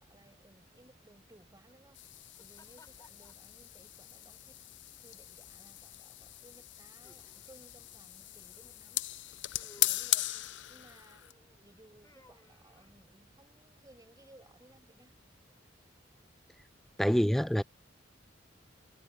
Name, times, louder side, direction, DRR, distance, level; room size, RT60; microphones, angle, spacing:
voice 1, 0.0-9.3 9.6-10.3 10.7-11.3 11.6-15.1, right 1 dB, 20° right, 7.2 m, -61 dB
sound 1, 1.3-16.9, left 1 dB, 20° left, 5.0 m, -67 dB
sound 2, 1.9-11.3, left 16 dB, 75° left, 0.6 m, -38 dB
voice 2, 17.0-17.6, equal, ahead, 0.3 m, -26 dB
head